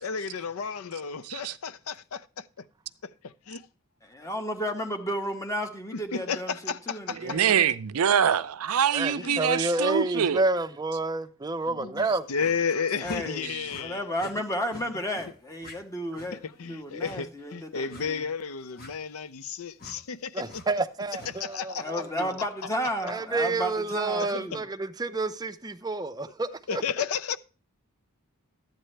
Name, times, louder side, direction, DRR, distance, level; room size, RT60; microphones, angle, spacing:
voice 1, 0.0-2.6 3.0-3.7 5.9-7.4 9.2-9.4 11.6-14.1 16.4-20.6 21.3-22.3 24.2-24.6 26.7-27.4, left 6 dB, 75° left, 0.6 m, -33 dB
voice 2, 4.0-7.7 13.0-18.2 21.8-24.6, equal, 15° left, 1.2 m, -33 dB
voice 3, 7.2-10.4, right 8 dB, 80° right, 0.5 m, -24 dB
voice 4, 8.9-12.3 20.3-22.3 23.0-26.8, right 3 dB, 20° right, 0.5 m, -29 dB
sound 1, 12.4-12.6 13.0-13.2 13.7-13.8 14.2-14.3 14.7-14.9 15.1-15.3 15.6-15.8 16.1-16.3 17.0-17.2 17.9-18.1 18.8-18.9 19.8-20.0 20.5-20.7 21.1-21.3, left 2 dB, 45° left, 1.8 m, -46 dB
12.5 x 9.0 x 3.3 m
head